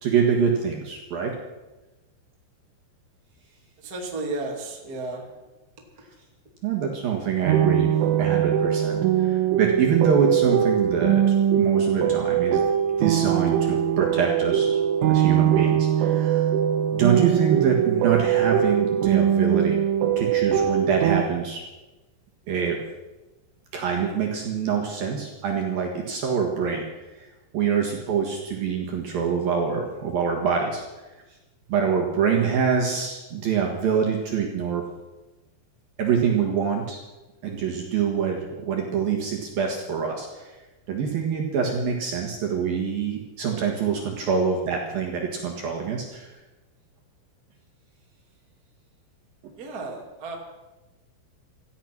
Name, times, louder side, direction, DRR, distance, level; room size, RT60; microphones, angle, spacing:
voice 1, 0.0-1.3 6.6-7.9 8.2-11.2 11.6-12.7 13.0-14.8 15.1-16.5 16.9-19.8 20.2-21.6 22.5-22.8 23.7-26.8 27.2-27.3 27.5-30.8 31.7-34.8 36.0-37.0 37.4-40.6 40.9-46.3, right 6 dB, 60° right, 0 dB, 2.8 m, -25 dB
voice 2, 3.8-5.2 49.6-50.3, right 2 dB, 30° right, 0 dB, 1.7 m, -33 dB
sound 1, 7.5-21.2, right 9 dB, 80° right, 3.3 m, -21 dB
17.0 x 13.5 x 6.1 m, 1.1 s
omnidirectional pair, 5.9 m